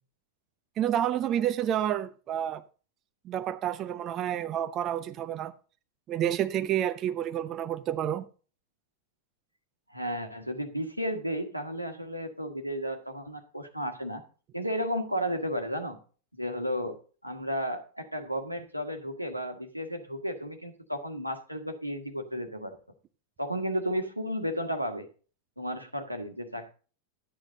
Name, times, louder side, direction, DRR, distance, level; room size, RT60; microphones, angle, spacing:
voice 1, 0.8-2.6 3.2-5.5 6.1-8.2, right 11 dB, 30° right, 0.6 m, -29 dB
voice 2, 9.9-14.2 14.5-16.0 16.4-17.0 17.2-22.8 23.4-25.1 25.6-26.7, equal, 90° right, 1.5 m, -33 dB
12.5 x 8.9 x 3.9 m
figure-of-eight pair, 90°, 0 cm